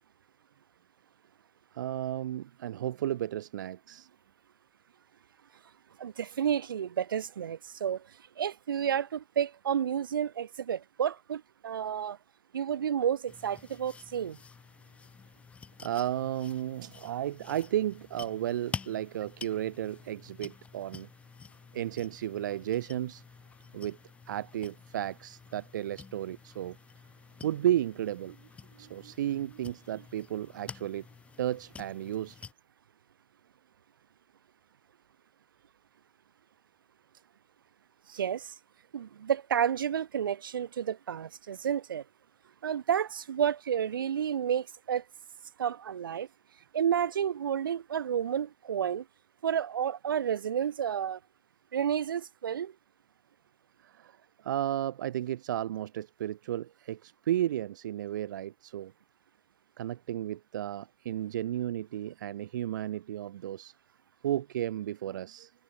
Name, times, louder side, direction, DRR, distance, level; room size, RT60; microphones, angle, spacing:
voice 1, 1.7-4.1 15.8-21.1 21.7-23.2 23.7-24.0 24.3-26.8 27.4-28.4 28.7-31.0 31.4-32.4 53.8-58.9 59.8-63.7 64.2-65.5, right 12 dB, 65° right, 0.6 m, -33 dB
voice 2, 6.0-8.1 8.4-12.2 12.5-14.4 38.1-38.5 38.9-42.0 42.6-45.0 45.6-46.3 46.7-49.0 49.4-51.2 51.7-52.7, right 8 dB, 80° right, 1.5 m, -31 dB
sound 1, 13.3-32.5, left 5 dB, 10° left, 2.0 m, -49 dB
hypercardioid pair, 145°, 11 cm